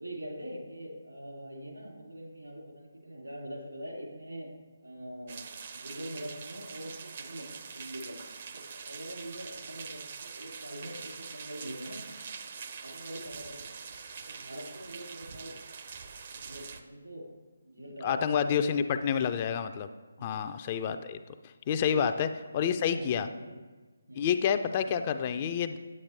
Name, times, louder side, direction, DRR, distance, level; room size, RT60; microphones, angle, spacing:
voice 1, 0.0-4.5 4.8-5.4 5.7-8.2 8.5-12.0 12.8-13.7 14.2-15.5 16.3-17.2 17.6-19.2 20.2-20.4 21.8-22.1 22.6-23.6 24.1-24.3, equal, 80° right, -2 dB, 3.0 m, -43 dB
sound 1, 5.3-16.8, right 6 dB, 40° right, 0.6 m, -44 dB
voice 2, 18.0-19.9 20.2-21.2 21.7-22.3 22.5-23.3 24.2-25.8, left 8 dB, 30° left, 9 dB, 0.3 m, -28 dB
9.6 x 8.5 x 3.3 m, 1.3 s
figure-of-eight pair, 145°, 0 cm